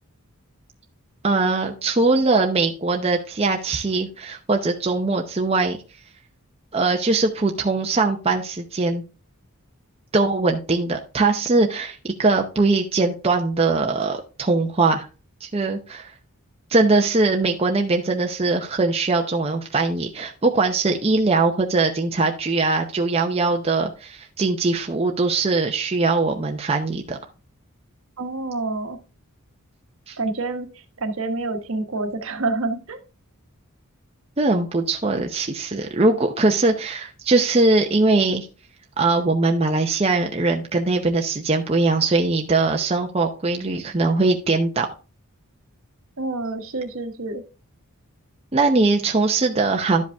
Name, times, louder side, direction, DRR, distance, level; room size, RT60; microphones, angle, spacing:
voice 1, 1.2-5.8 6.7-9.0 10.1-15.1 15.4-16.1 16.7-27.2 30.1-30.2 34.4-38.5 39.0-44.9 48.5-50.0, right 3 dB, 25° right, 3 dB, 0.7 m, -21 dB
voice 2, 28.2-29.0 30.2-30.7 31.0-33.0 46.2-47.4, right 3 dB, 60° right, 8 dB, 1.1 m, -27 dB
12.0 x 5.1 x 3.4 m, 0.34 s
head